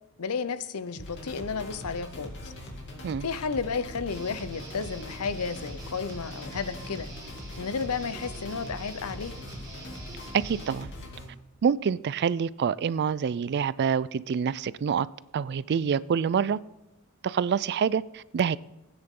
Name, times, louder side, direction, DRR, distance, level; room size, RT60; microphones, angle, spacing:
voice 1, 0.2-2.5 3.2-7.1 7.6-9.3, left 5 dB, 80° left, 0.7 m, -32 dB
sound 1, 1.0-11.2, left 1 dB, 55° left, 2.6 m, -41 dB
Guitar, 4.1-10.8, right 2 dB, 20° right, 4.7 m, -46 dB
voice 2, 10.3-10.9 11.6-15.1 15.3-16.6 17.2-18.6, right 7 dB, 50° right, 0.3 m, -26 dB
16.5 x 9.6 x 3.7 m
head